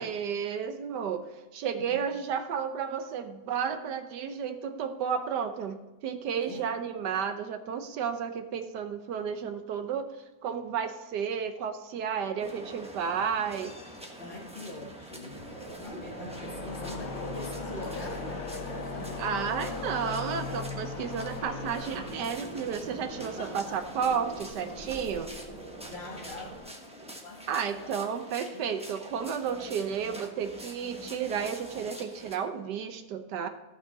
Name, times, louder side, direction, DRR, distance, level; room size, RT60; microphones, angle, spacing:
voice 1, 0.0-10.1 10.4-13.7 19.2-25.3 27.5-33.5, right 7 dB, 70° right, 9 dB, 1.3 m, -32 dB
sound 1, 12.4-32.4, equal, 5° right, 0.9 m, -45 dB
voice 2, 14.2-20.4 23.2-23.8 25.8-28.6, left 2 dB, 30° left, -6 dB, 1.6 m, -43 dB
sound 2, 15.3-26.6, right 1 dB, 25° right, 2.0 m, -44 dB
sound 3, 16.3-23.6, left 5 dB, 60° left, 1.1 m, -40 dB
14.5 x 6.2 x 4.1 m, 1.1 s
omnidirectional pair, 2.0 m